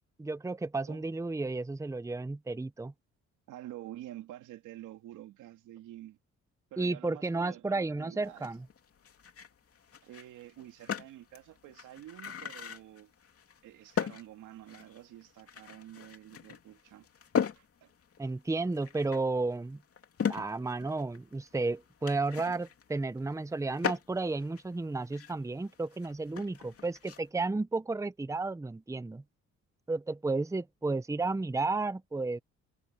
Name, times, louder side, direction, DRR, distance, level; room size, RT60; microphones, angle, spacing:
voice 1, 0.2-2.9 6.8-8.6 18.2-19.8 20.3-29.2 29.9-32.4, right 3 dB, 10° right, 0.8 m, -32 dB
voice 2, 3.5-6.2 6.7-8.5 10.0-13.1 13.6-17.1 17.5-17.9, right 14 dB, 90° right, 2.5 m, -48 dB
sound 1, 8.2-27.3, left 7 dB, 50° left, 2.8 m, -39 dB
cardioid pair, 90°, 30 cm